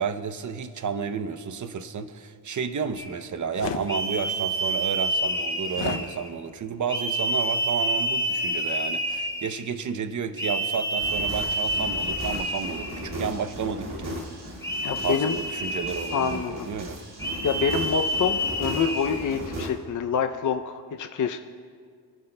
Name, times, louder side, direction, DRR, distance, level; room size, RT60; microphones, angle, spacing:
voice 1, 0.0-14.1 15.0-17.0, right 6 dB, 45° right, 10 dB, 0.7 m, -31 dB
sound 1, 3.0-3.2 3.9-6.3 6.9-9.6 10.4-13.2 14.6-16.5 17.2-19.3, right 1 dB, 10° left, 1.3 m, -29 dB
sound 2, 3.5-3.9 5.7-6.1, left 8 dB, 85° left, 0.7 m, -32 dB
sound 3, 11.0-19.7, equal, 60° right, 2.2 m, -37 dB
voice 2, 14.8-15.4 16.1-16.7 17.4-21.4, left 6 dB, 50° left, 7 dB, 0.5 m, -26 dB
23.5 x 11.5 x 2.2 m, 2.1 s
wide cardioid pair, 110°, 42 cm